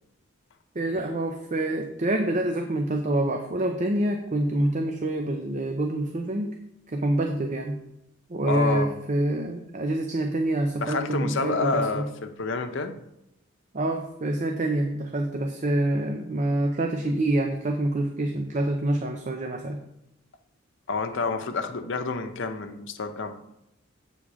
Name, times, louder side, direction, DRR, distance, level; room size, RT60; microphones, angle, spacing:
voice 1, 0.7-6.5 6.9-7.8 8.3-12.1 13.7-19.8, right 1 dB, 35° right, 3 dB, 0.6 m, -26 dB
voice 2, 8.5-9.0 10.8-13.0 20.9-23.4, left 4 dB, 65° left, 6 dB, 0.7 m, -28 dB
8.2 x 3.7 x 6.1 m, 0.86 s
head